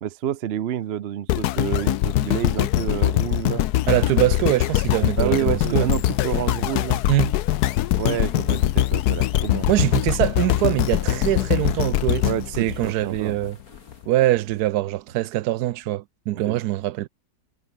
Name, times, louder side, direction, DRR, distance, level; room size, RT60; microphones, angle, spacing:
voice 1, 0.0-3.7 5.2-7.0 8.0-9.7 12.2-13.4 16.3-16.6, right 10 dB, 60° right, 0.7 m, -28 dB
sound 1, 1.3-13.5 14.0-14.1, left 14 dB, 80° left, 1.2 m, -22 dB
voice 2, 3.9-5.9 7.1-7.3 9.7-12.3 12.6-13.6 14.1-17.1, right 15 dB, 80° right, 1.1 m, -23 dB
sound 2, 4.7-14.5, left 4 dB, 65° left, 3.5 m, -53 dB
omnidirectional pair, 1.7 m